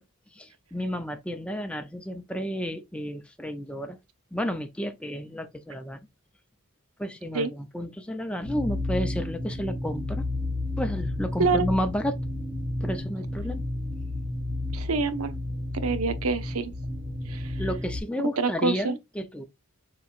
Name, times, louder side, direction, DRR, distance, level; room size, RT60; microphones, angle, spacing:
voice 1, 0.4-4.0 4.3-6.0 7.0-10.2 10.8-12.2 12.8-13.6 17.6-19.5, equal, 5° left, 0.5 m, -31 dB
sound 1, 8.4-18.0, left 1 dB, 15° right, 1.8 m, -32 dB
voice 2, 14.7-15.3 15.7-16.7 17.3-17.5 18.4-19.0, right 4 dB, 85° right, 0.7 m, -26 dB
6.9 x 3.0 x 2.4 m
head